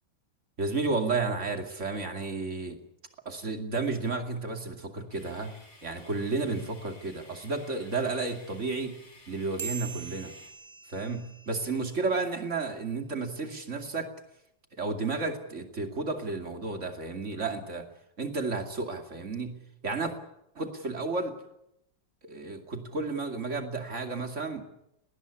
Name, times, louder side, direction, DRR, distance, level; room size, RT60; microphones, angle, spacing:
voice 1, 0.6-2.8 3.2-5.5 5.8-9.0 9.3-10.3 10.9-14.1 14.8-17.9 18.2-20.1 20.5-21.4 22.2-24.6, right 3 dB, 40° right, 5 dB, 2.8 m, -32 dB
sound 1, 5.1-10.5, left 2 dB, 80° left, 6.5 m, -55 dB
sound 2, 9.6-12.4, right 6 dB, 15° right, 3.8 m, -43 dB
19.5 x 19.0 x 9.8 m, 0.81 s
omnidirectional pair, 2.1 m